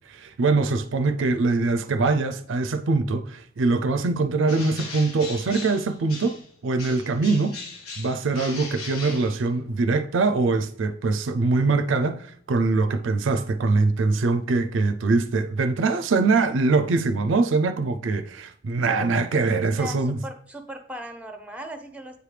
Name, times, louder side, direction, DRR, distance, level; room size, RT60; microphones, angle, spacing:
voice 1, 0.1-7.6 8.0-20.2, right 3 dB, 60° right, 0.4 m, -23 dB
Bird, 4.4-6.5 6.8-9.8, left 4 dB, 85° left, 1.4 m, -39 dB
voice 2, 19.8-22.2, equal, 5° right, 0.6 m, -38 dB
8.1 x 4.9 x 3.2 m
head